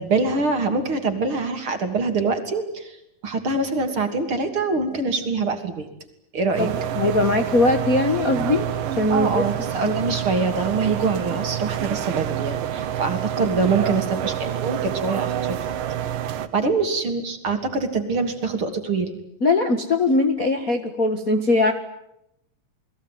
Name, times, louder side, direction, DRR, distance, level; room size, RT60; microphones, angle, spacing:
voice 1, 0.0-3.0 3.2-5.9 6.3-6.7 9.1-15.6 16.5-19.2, right 4 dB, 40° right, 7 dB, 3.5 m, -24 dB
voice 2, 6.6-8.7 9.0-9.4 9.8-10.0 13.4-13.5 19.4-21.7, left 2 dB, 35° left, 8 dB, 1.5 m, -21 dB
sound 1, 6.6-16.5, right 10 dB, 85° right, 3.1 m, -28 dB
29.5 x 21.5 x 9.4 m, 0.81 s
omnidirectional pair, 3.8 m